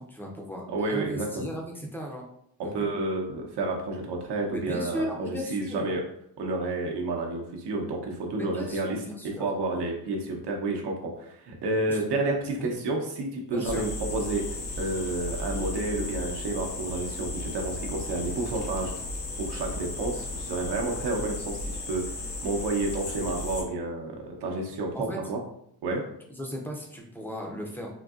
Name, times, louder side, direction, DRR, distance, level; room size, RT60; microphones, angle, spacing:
voice 1, 0.0-2.2 2.6-2.9 4.5-5.9 8.4-9.5 11.9-12.0 12.6-12.7 13.5-13.8 24.9-25.2 26.3-28.0, equal, 5° left, 0 dB, 0.5 m, -36 dB
voice 2, 0.7-1.4 2.6-6.0 6.4-18.9 19.4-22.0 22.4-25.4 25.8-26.0, right 2 dB, 75° right, 0 dB, 0.8 m, -30 dB
sound 1, 13.6-23.6, left 2 dB, 85° left, 0.7 m, -35 dB
3.8 x 2.6 x 2.4 m, 0.73 s
wide cardioid pair, 145°, 40 cm